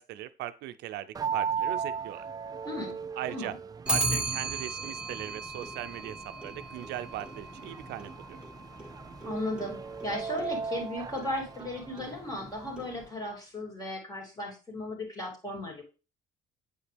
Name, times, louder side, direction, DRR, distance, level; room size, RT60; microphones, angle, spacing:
voice 1, 0.0-2.3 3.2-3.5 3.9-8.4, right 13 dB, 85° right, 12 dB, 0.5 m, -39 dB
sound 1, 1.1-13.1, right 6 dB, 20° right, 0.4 m, -38 dB
voice 2, 2.6-3.0 3.3-3.5 9.2-15.8, left 1 dB, 20° left, 0 dB, 2.9 m, -36 dB
Clock, 3.9-13.2, right 2 dB, 5° right, 1.1 m, -37 dB
8.4 x 5.1 x 3.4 m, 0.32 s
cardioid pair, 110°, 17 cm